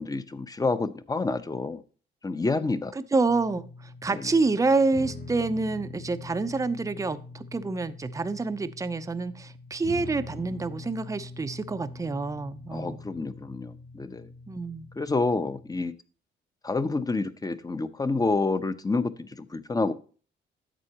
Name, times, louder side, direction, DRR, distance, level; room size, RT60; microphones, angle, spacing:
voice 1, 0.0-1.8 2.2-2.9 4.1-4.2 12.7-14.3 15.0-15.9 16.6-19.9, left 3 dB, 20° left, 12 dB, 0.7 m, -28 dB
voice 2, 3.1-3.7 4.0-13.0 14.5-14.9, right 3 dB, 15° right, 10 dB, 0.6 m, -27 dB
sound 1, 3.3-15.8, left 3 dB, 55° left, 5.4 m, -44 dB
11.0 x 7.6 x 2.9 m, 0.38 s
cardioid pair, 90°, 20 cm